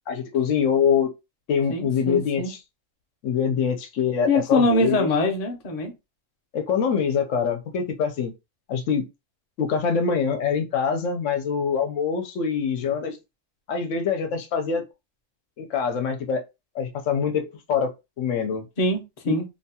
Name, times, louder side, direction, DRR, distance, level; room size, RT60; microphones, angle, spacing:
voice 1, 0.1-1.1 1.5-2.6 3.2-5.1 6.5-8.3 8.7-9.1 9.6-13.2 13.7-14.8 15.6-16.4 16.7-17.9 18.2-18.6 19.3-19.4, left 6 dB, 75° left, 0.9 m, -24 dB
voice 2, 1.7-2.5 4.3-5.9 18.8-19.4, left 2 dB, 40° left, 0.6 m, -23 dB
2.8 x 2.2 x 2.7 m
omnidirectional pair, 1.3 m